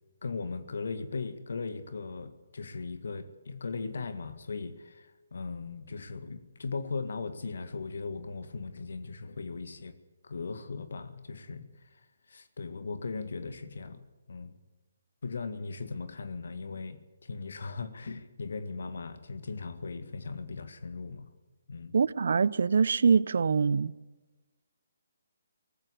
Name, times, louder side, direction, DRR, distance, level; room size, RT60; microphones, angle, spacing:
voice 1, 0.2-10.0 10.2-12.0 12.3-14.5 15.2-21.3 21.7-22.0, left 4 dB, 60° left, 1.9 m, -38 dB
voice 2, 21.9-23.9, right 5 dB, 60° right, 0.7 m, -24 dB
19.0 x 15.5 x 10.0 m
figure-of-eight pair, 140°, 0 cm